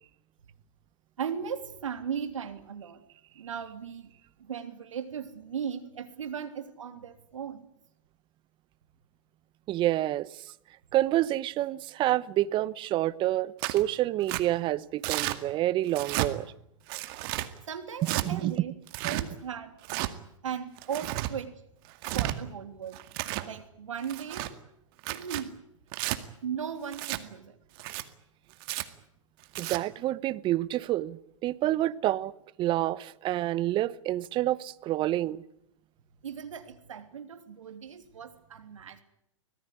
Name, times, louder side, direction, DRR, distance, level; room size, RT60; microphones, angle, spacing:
voice 1, 1.2-3.0 3.3-4.1 4.4-7.6 17.7-18.7 19.0-19.8 20.4-21.6 22.1-23.0 23.4-24.5 25.1-25.6 26.4-27.6 36.2-39.0, right 7 dB, 75° right, 3.3 m, -37 dB
voice 2, 9.7-10.4 10.9-16.5 18.0-18.7 29.6-32.3 32.6-35.4, right 14 dB, 30° right, 0.9 m, -28 dB
Tearing, 13.6-13.8 14.3-14.4 15.0-15.4 15.9-16.3 16.9-17.5 18.0-18.3 18.9-19.2 19.8-20.1 20.8-21.3 21.9-22.3 22.9-23.5 24.0-24.5 25.0-25.4 25.9-26.2 26.9-27.2 27.8-28.0 28.6-28.8 29.4-29.8, right 17 dB, 45° right, 2.1 m, -32 dB
25.0 x 18.0 x 9.8 m
hypercardioid pair, 110°, 17 cm